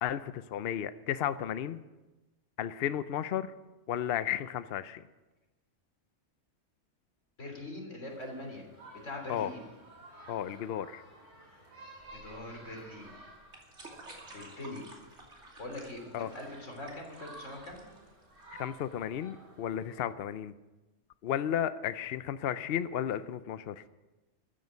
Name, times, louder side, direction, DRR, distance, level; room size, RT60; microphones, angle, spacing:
voice 1, 0.0-1.8 2.6-3.5 3.9-5.0 9.3-9.5 10.3-11.0 16.1-16.3 18.6-20.5 21.2-23.8, left 10 dB, 60° left, 13 dB, 0.8 m, -33 dB
voice 2, 7.4-8.7 8.9-9.6 12.1-13.2 14.3-14.8 15.6-17.8, left 1 dB, 90° left, 1 dB, 3.8 m, -42 dB
sound 1, 8.1-20.0, right 1 dB, 90° right, 4.6 m, -54 dB
sound 2, 12.0-19.0, right 2 dB, 70° right, 3.1 m, -53 dB
14.0 x 9.4 x 8.2 m, 1.1 s
omnidirectional pair, 1.3 m